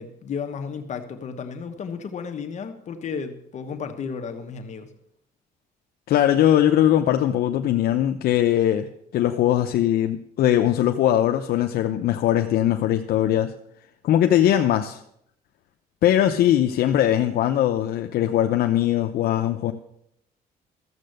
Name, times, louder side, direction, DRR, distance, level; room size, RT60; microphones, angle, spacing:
voice 1, 0.0-4.9, left 6 dB, 45° left, 6 dB, 1.2 m, -33 dB
voice 2, 6.1-8.9 9.1-13.5 14.0-15.0 16.0-19.7, left 11 dB, 70° left, 5 dB, 0.7 m, -20 dB
13.5 x 7.7 x 6.5 m, 0.75 s
cardioid pair, 130°, 16 cm